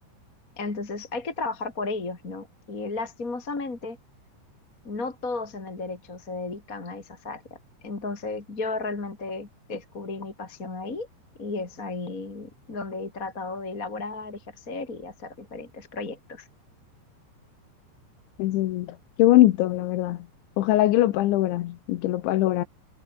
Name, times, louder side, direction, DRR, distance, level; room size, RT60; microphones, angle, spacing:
voice 1, 0.6-4.0 4.8-7.6 7.8-11.1 11.4-16.5, left 3 dB, 20° left, 2.6 m, -34 dB
voice 2, 18.4-20.2 20.6-22.6, left 15 dB, 75° left, 3.5 m, -22 dB
omnidirectional pair, 5.4 m